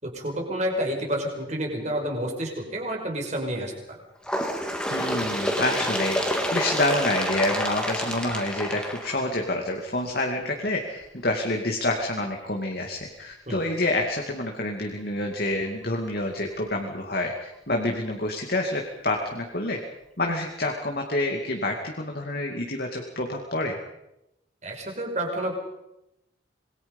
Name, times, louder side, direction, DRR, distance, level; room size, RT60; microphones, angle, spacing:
voice 1, 0.0-4.0 13.5-13.6 24.6-25.6, right 1 dB, 35° right, 1 dB, 5.7 m, -29 dB
Bird, 4.2-9.7 10.6-10.7 11.0-11.1 12.0-12.1 13.0-13.1 14.0-14.1, equal, 5° left, 2.6 m, -28 dB
voice 2, 4.9-19.8 20.2-23.8, left 2 dB, 50° left, 2 dB, 2.5 m, -28 dB
27.0 x 22.0 x 5.5 m, 0.87 s
head